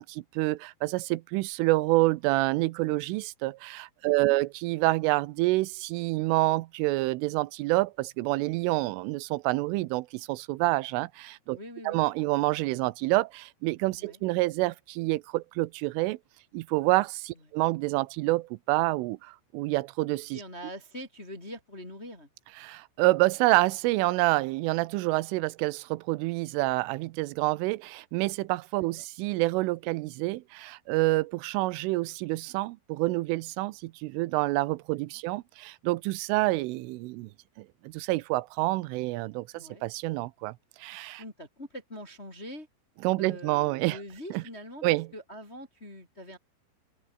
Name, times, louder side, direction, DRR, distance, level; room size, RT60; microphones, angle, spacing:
voice 1, 0.0-11.6 11.9-16.2 16.5-20.4 22.6-37.3 37.6-41.2 43.0-44.0 44.3-44.4 44.8-45.1, right 20 dB, 80° right, 3.2 m, -28 dB
voice 2, 4.0-4.4 11.5-12.0 14.0-14.2 20.3-22.3 29.0-29.1 35.1-35.2 39.5-39.8 41.2-42.7 43.2-46.4, equal, 15° left, 3.0 m, -43 dB
omnidirectional pair, 5.9 m